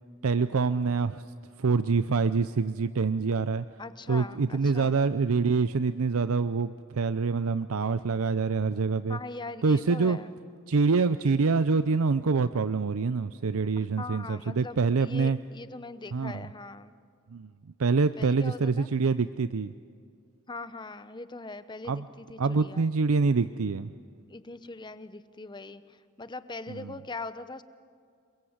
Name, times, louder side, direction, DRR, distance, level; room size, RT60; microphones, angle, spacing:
voice 1, 0.2-1.2 1.6-3.6 4.1-9.2 9.6-10.2 10.7-15.4 16.1-16.4 17.3-17.5 17.8-19.7 21.9-22.1 22.4-23.9 26.7-26.9, right 4 dB, 80° right, 12 dB, 0.6 m, -26 dB
voice 2, 3.8-4.9 9.1-10.4 13.8-16.9 18.2-18.9 20.5-22.8 24.3-27.6, left 3 dB, 20° left, 13 dB, 0.8 m, -41 dB
28.0 x 22.5 x 8.0 m, 2.2 s
head